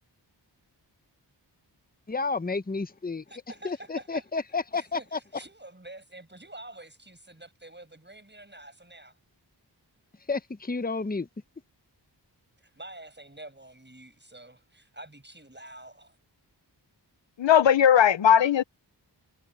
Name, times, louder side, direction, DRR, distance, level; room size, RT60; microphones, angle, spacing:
voice 1, 2.1-3.2 3.6-5.2 10.3-11.3, left 4 dB, 20° left, 0.8 m, -31 dB
voice 2, 3.3-4.2 4.7-9.2 12.6-16.2, right 1 dB, 25° right, 7.8 m, -47 dB
voice 3, 17.4-18.6, left 9 dB, 85° left, 0.7 m, -18 dB
wide cardioid pair, 55°, 43 cm